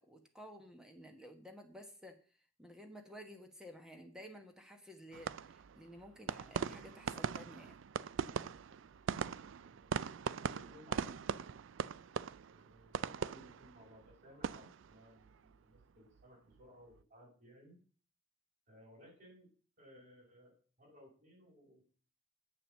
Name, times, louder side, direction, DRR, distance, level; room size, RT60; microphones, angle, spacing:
voice 1, 0.0-2.2 2.6-7.8, equal, 5° right, 5 dB, 1.2 m, -53 dB
sound 1, 5.1-16.2 16.5-17.0, right 6 dB, 80° right, 0.4 m, -41 dB
voice 2, 9.6-11.2 12.5-17.8 18.7-19.5 19.8-21.8, equal, 50° right, -6 dB, 6.2 m, -60 dB
8.6 x 7.0 x 7.2 m, 0.41 s
head